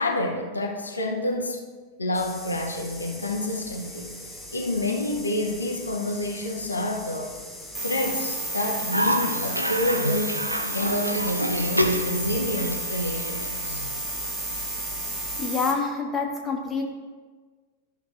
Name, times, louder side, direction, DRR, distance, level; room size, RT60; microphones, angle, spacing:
voice 1, 0.0-1.6 2.0-4.1 4.5-7.4 7.8-10.4 10.7-13.8, left 1 dB, 80° left, 1 dB, 0.8 m, -28 dB
sound 1, 2.1-15.5, left 1 dB, ahead, 1.3 m, -42 dB
sound 2, 7.7-15.7, right 2 dB, 20° right, 1.8 m, -32 dB
Cough, 8.9-14.0, equal, 90° right, 0.5 m, -28 dB
voice 2, 15.4-16.8, left 4 dB, 20° left, 1 dB, 1.3 m, -27 dB
13.5 x 6.1 x 2.5 m, 1.4 s
figure-of-eight pair, 90°, 0 cm